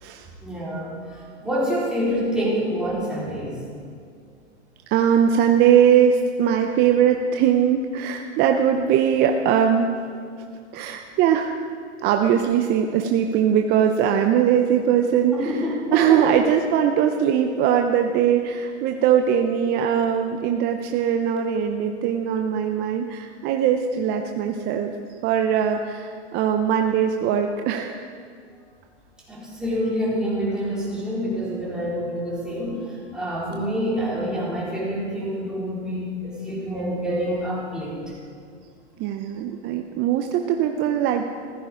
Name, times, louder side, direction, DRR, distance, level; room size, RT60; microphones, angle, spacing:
voice 1, 0.4-3.6 15.3-16.4 29.3-38.0, equal, ahead, -7 dB, 4.3 m, -27 dB
voice 2, 4.9-9.9 10.7-11.6 12.0-24.9 25.2-28.0 39.0-41.3, right 8 dB, 30° right, 4 dB, 0.7 m, -21 dB
15.5 x 13.5 x 5.0 m, 2.2 s
hypercardioid pair, 130°, 34 cm